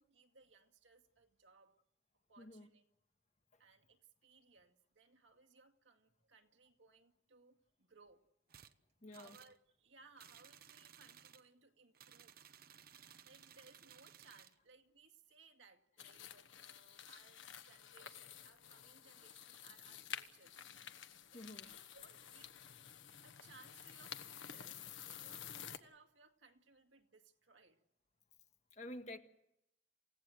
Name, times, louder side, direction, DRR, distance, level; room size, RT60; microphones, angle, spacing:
voice 1, 0.0-1.8 2.3-2.8 3.6-8.2 9.1-12.5 13.2-20.7 21.3-22.6 23.2-27.8, right 4 dB, 80° right, 2.2 m, -65 dB
voice 2, 2.4-2.7 9.0-9.4 21.3-21.7 28.7-29.2, left 1 dB, 40° left, 1.7 m, -50 dB
sound 1, 8.5-8.7 9.1-9.6 10.2-11.5 11.9-14.6, right 9 dB, 50° right, 0.9 m, -60 dB
sound 2, 16.0-25.8, left 9 dB, 85° left, 1.3 m, -51 dB
28.5 x 16.5 x 7.9 m
head